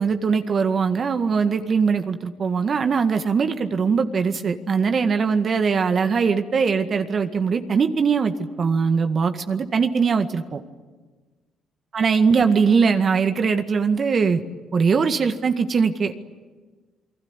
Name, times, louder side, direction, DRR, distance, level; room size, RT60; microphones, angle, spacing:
voice 1, 0.0-10.6 11.9-14.4 14.7-16.1, right 5 dB, 50° right, 7 dB, 1.9 m, -21 dB
28.5 x 20.0 x 9.8 m, 1.3 s
supercardioid pair, 65°, 0 cm